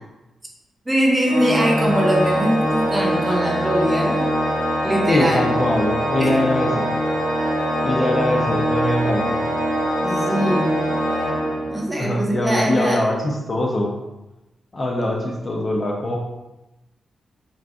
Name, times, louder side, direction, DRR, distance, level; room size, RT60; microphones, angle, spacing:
voice 1, 0.9-4.2 4.8-5.4 6.2-6.3 10.0-11.0 11.7-13.0, equal, 15° right, -1 dB, 0.5 m, -21 dB
Organ, 1.2-12.1, equal, 55° left, 0.9 m, -23 dB
voice 2, 5.1-6.9 7.8-9.4 12.0-13.9 14.7-16.2, left 1 dB, 35° left, 0 dB, 0.5 m, -22 dB
3.9 x 2.4 x 2.3 m, 1.0 s
wide cardioid pair, 130°, 0 cm